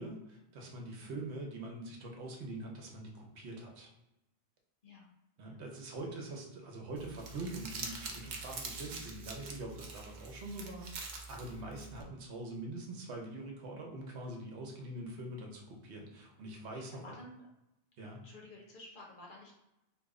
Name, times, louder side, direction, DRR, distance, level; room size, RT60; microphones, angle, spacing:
voice 1, 0.0-3.9 5.4-17.1 18.0-18.2, right 2 dB, 85° right, 0 dB, 1.0 m, -44 dB
Crumpling crinkling, 7.0-12.0, right 4 dB, 55° right, 0.6 m, -45 dB
voice 2, 11.5-11.8 16.7-17.5 18.2-19.5, left 2 dB, 55° left, -2 dB, 0.8 m, -53 dB
2.8 x 2.0 x 3.6 m, 0.91 s
omnidirectional pair, 1.1 m